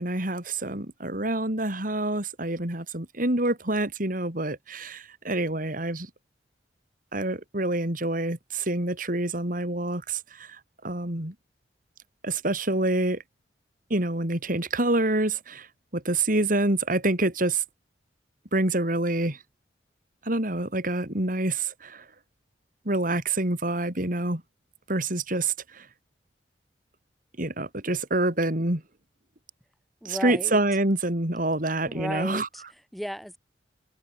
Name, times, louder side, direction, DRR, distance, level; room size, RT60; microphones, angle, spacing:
voice 1, 0.0-6.1 7.1-11.3 12.2-13.2 13.9-15.7 15.9-17.6 18.5-19.4 20.2-22.0 22.8-24.4 24.9-25.9 27.4-28.8 30.0-32.5, right 2 dB, 50° right, 4.5 m, -27 dB
voice 2, 30.0-30.6 31.9-33.4, equal, ahead, 4.7 m, -35 dB
head